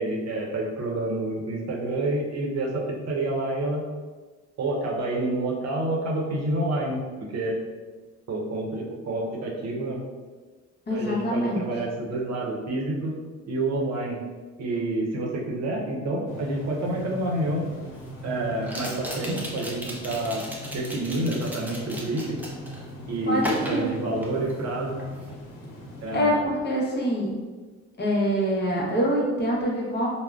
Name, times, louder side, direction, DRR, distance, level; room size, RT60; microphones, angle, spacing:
voice 1, 0.0-3.8 4.6-7.0 7.3-7.6 8.3-10.0 10.9-13.1 13.5-14.2 14.6-17.7 18.2-20.4 20.7-22.4 23.1-25.0 26.0-26.4, right 2 dB, 60° right, -2 dB, 0.7 m, -28 dB
voice 2, 10.9-11.6 23.3-23.9 26.1-27.3 28.0-30.1, equal, 35° left, -3 dB, 0.8 m, -25 dB
sound 1, 16.3-26.2, equal, 85° left, 0.7 m, -40 dB
sound 2, 16.9-17.0 18.6-22.8 23.4-24.7 25.0-25.3, equal, 5° right, 0.5 m, -36 dB
3.5 x 2.1 x 2.3 m, 1.3 s
cardioid pair, 90°, 30 cm